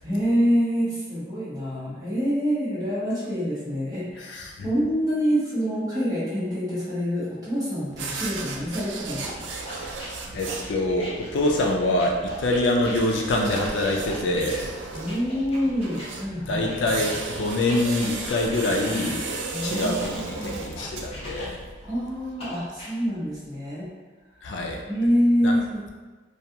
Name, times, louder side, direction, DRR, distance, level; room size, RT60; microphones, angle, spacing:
voice 1, 0.0-9.5 14.9-16.7 19.5-20.6 21.8-23.9 24.9-25.9, equal, 20° right, -10 dB, 0.9 m, -26 dB
voice 2, 4.3-4.7 10.3-14.7 16.5-19.3 19.6-21.6 24.4-24.8 25.4-25.5, left 1 dB, 85° left, 0 dB, 0.4 m, -25 dB
sound 1, 7.9-21.7, right 4 dB, 90° right, 0.3 m, -36 dB
sound 2, 9.2-16.1 16.6-21.8 22.4-22.9, left 1 dB, 35° left, 0.7 m, -41 dB
2.3 x 2.3 x 2.7 m, 1.3 s
head